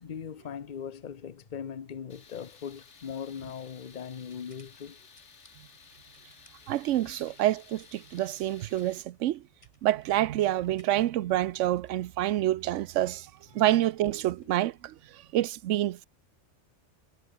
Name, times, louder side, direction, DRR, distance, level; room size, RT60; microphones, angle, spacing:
voice 1, 0.0-5.0 7.1-7.2, left 7 dB, 45° left, 1.0 m, -40 dB
Tools, 2.1-9.0, left 5 dB, 70° left, 2.0 m, -55 dB
sound 1, 2.3-15.0, left 1 dB, 25° left, 6.6 m, -65 dB
voice 2, 6.7-9.4 9.8-13.3 13.5-14.9 15.3-16.0, right 14 dB, 80° right, 0.9 m, -27 dB
omnidirectional pair, 1.3 m